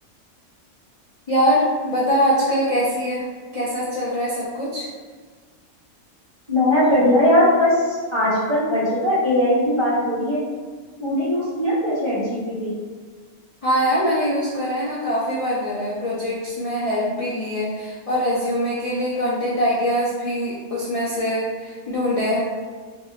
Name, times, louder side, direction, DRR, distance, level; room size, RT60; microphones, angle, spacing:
voice 1, 1.3-3.2 3.5-4.9 13.6-22.4, equal, 45° left, -8 dB, 0.4 m, -23 dB
voice 2, 6.5-10.4 11.0-12.7, left 1 dB, 25° right, -10 dB, 0.8 m, -19 dB
4.5 x 2.7 x 2.4 m, 1.5 s
omnidirectional pair, 1.6 m